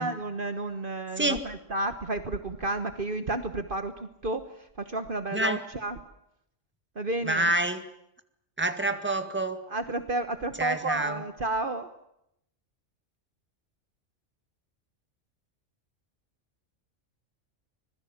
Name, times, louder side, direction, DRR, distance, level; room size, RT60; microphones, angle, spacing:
voice 1, 0.0-6.0 7.0-7.5 9.7-11.9, right 2 dB, 45° right, 9 dB, 1.4 m, -31 dB
voice 2, 7.2-7.8 8.6-9.6 10.6-11.2, right 1 dB, 10° right, 8 dB, 1.9 m, -27 dB
25.5 x 21.5 x 7.3 m, 0.77 s
omnidirectional pair, 1.2 m